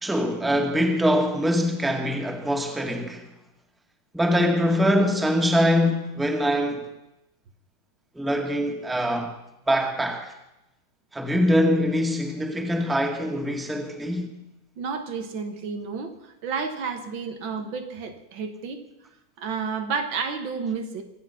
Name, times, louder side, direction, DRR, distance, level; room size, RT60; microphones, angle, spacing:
voice 1, 0.0-3.3 4.1-6.9 8.2-9.3 9.7-10.3 11.1-14.3, equal, ahead, 1.8 m, -23 dB
voice 2, 14.8-18.8 19.4-21.0, right 5 dB, 80° right, 2.1 m, -31 dB
24.0 x 8.5 x 5.7 m
omnidirectional pair, 2.1 m